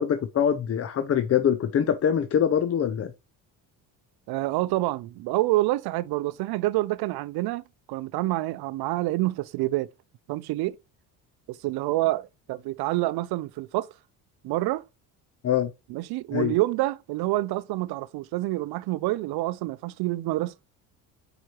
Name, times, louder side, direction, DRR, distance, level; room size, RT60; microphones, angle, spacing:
voice 1, 0.0-3.1 15.4-15.7 16.3-16.5, left 8 dB, 35° left, 0.6 m, -24 dB
voice 2, 4.3-7.6 7.9-9.9 10.3-10.8 11.5-13.9 14.4-14.8 15.9-20.5, right 18 dB, 65° right, 0.6 m, -27 dB
4.9 x 4.6 x 4.5 m
cardioid pair, 105°, 40 cm